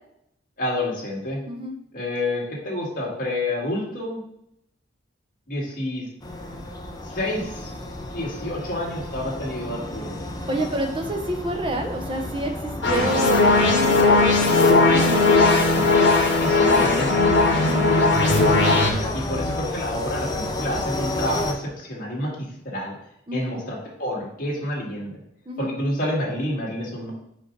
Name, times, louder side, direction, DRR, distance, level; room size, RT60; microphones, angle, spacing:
voice 1, 0.6-1.4 1.9-4.2 5.5-6.0 7.0-7.7 8.1-10.1 16.4-17.3 18.3-22.3 22.6-22.9 23.3-25.2 25.6-27.1, left 1 dB, 50° left, -5 dB, 2.0 m, -28 dB
sound 1, 6.2-21.5, left 2 dB, 20° left, 0.6 m, -32 dB
voice 2, 10.5-16.0 17.5-17.8 23.3-23.5 25.5-25.7, right 1 dB, 30° right, 3 dB, 0.8 m, -29 dB
sound 2, 12.8-18.9, left 3 dB, 75° left, 1.4 m, -18 dB
5.2 x 5.1 x 3.9 m, 0.76 s
head